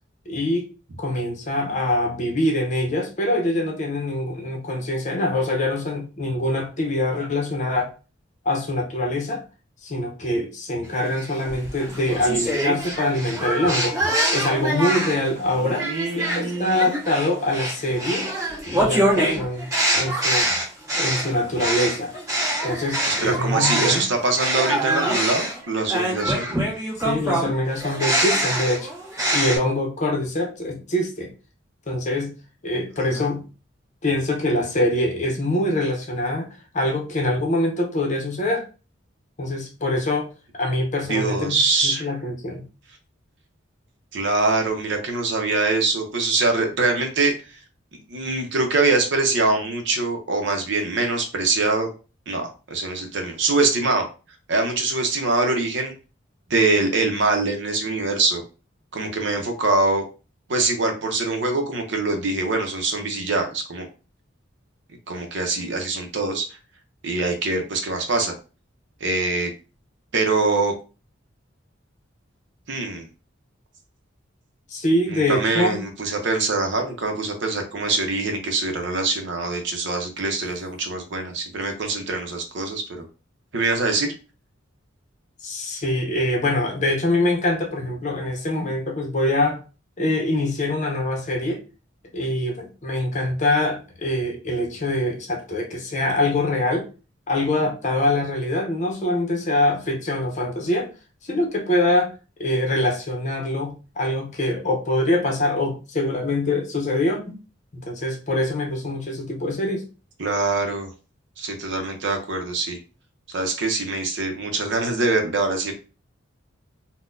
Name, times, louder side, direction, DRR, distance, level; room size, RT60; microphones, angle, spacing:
voice 1, 0.3-0.7 1.0-7.9 8.4-9.4 9.8-13.9 14.3-15.9 16.1-18.3 18.6-19.7 19.9-20.6 21.0-22.1 22.6-24.1 26.9-28.9 29.3-31.3 31.9-32.3 32.6-33.4 34.0-36.5 36.7-38.6 39.4-40.3 40.6-42.7 74.7-75.9 85.4-89.6 90.0-91.6 92.1-96.9 97.3-100.9 101.3-102.1 102.4-107.4 107.7-109.8, left 1 dB, 40° left, 1 dB, 0.7 m, -24 dB
sound 1, 11.2-15.3 15.8-24.1 24.4-29.6, right 1 dB, 15° right, 1.5 m, -24 dB
voice 2, 15.5-16.9 23.0-26.6 33.1-33.3 41.1-42.1 44.1-47.3 47.9-51.9 52.3-54.0 54.5-55.9 56.5-58.4 58.9-60.0 60.5-63.9 65.1-66.5 67.0-68.3 69.0-69.5 70.1-70.7 72.7-73.0 75.1-82.8 83.5-84.1 110.2-110.9 111.4-112.8 113.3-115.7, right 3 dB, 65° right, 4 dB, 0.7 m, -23 dB
3.9 x 2.1 x 2.5 m, 0.33 s
head